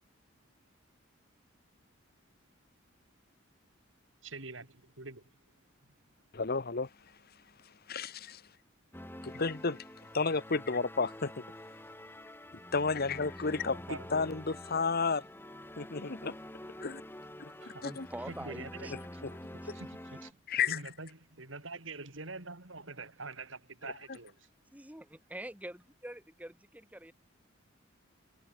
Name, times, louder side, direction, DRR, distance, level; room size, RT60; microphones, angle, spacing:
voice 1, 4.2-5.3 5.8-5.9 9.3-9.4 13.9-14.1 17.6-17.8 18.3-19.2 19.7-24.5, right 3 dB, 70° right, 4.1 m, -45 dB
voice 2, 6.3-6.9 7.9-8.4 9.2-9.8 10.1-11.4 12.7-13.8 14.1-15.2 15.8-16.4 16.8-17.0 17.8-18.1 19.2-19.3 20.5-20.8, left 4 dB, 50° left, 1.2 m, -31 dB
sound 1, 8.9-20.3, left 1 dB, 10° left, 4.2 m, -47 dB
voice 3, 17.8-18.9 19.6-19.7 24.7-27.1, right 1 dB, 10° right, 4.6 m, -45 dB
head